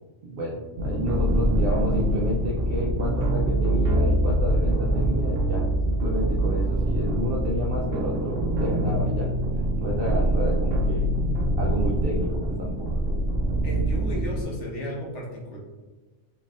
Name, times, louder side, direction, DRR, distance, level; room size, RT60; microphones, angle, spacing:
voice 1, 0.2-9.3 9.8-12.3 12.6-12.9, equal, 60° right, -3 dB, 0.7 m, -31 dB
sound 1, 0.8-14.4, right 1 dB, 85° right, 1.0 m, -24 dB
voice 2, 13.6-15.6, equal, 70° left, -3 dB, 1.3 m, -34 dB
4.3 x 3.2 x 2.4 m, 1.2 s
omnidirectional pair, 1.3 m